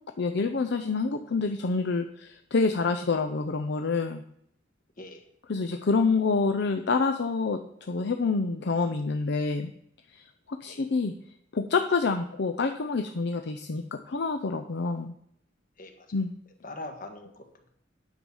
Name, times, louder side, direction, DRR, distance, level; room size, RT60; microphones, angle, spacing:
voice 1, 0.2-4.2 5.5-9.7 10.1-11.1 11.5-15.1 16.1-16.3, left 4 dB, 65° left, 7 dB, 0.6 m, -27 dB
voice 2, 16.6-17.7, left 2 dB, 50° left, 5 dB, 1.5 m, -42 dB
9.1 x 7.1 x 5.5 m, 0.71 s
head